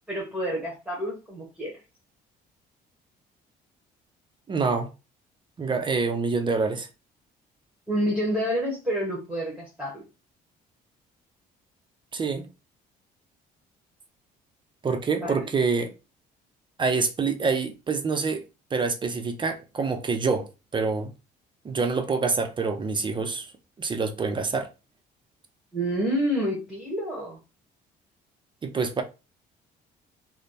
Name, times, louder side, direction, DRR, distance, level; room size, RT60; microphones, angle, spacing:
voice 1, 0.1-1.7 7.9-10.0 15.2-15.4 25.7-27.4, equal, 5° right, 1.2 m, -28 dB
voice 2, 4.5-4.9 5.6-6.9 12.1-12.5 14.8-15.9 16.8-18.4 18.7-21.1 21.6-23.5 23.8-24.7 28.6-29.0, right 4 dB, 30° right, 0.5 m, -26 dB
3.2 x 2.0 x 4.0 m
cardioid pair, 110°, 17 cm